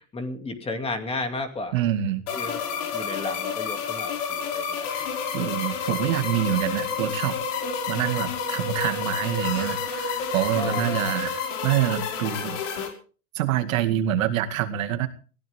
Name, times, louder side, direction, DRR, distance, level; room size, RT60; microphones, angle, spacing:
voice 1, 0.0-1.8 2.3-2.6 2.9-4.9 6.2-6.3 10.6-11.1, left 2 dB, 15° left, 7 dB, 2.5 m, -33 dB
voice 2, 1.7-2.3 4.9-5.1 5.3-7.4 7.9-12.6 13.3-15.1, right 11 dB, 75° right, 8 dB, 2.2 m, -26 dB
sound 1, 2.3-12.9, left 6 dB, 60° left, 5.5 m, -30 dB
sound 2, 4.9-11.3, left 5 dB, 40° left, 7.3 m, -48 dB
21.0 x 15.5 x 3.6 m, 0.39 s
supercardioid pair, 140°, 41 cm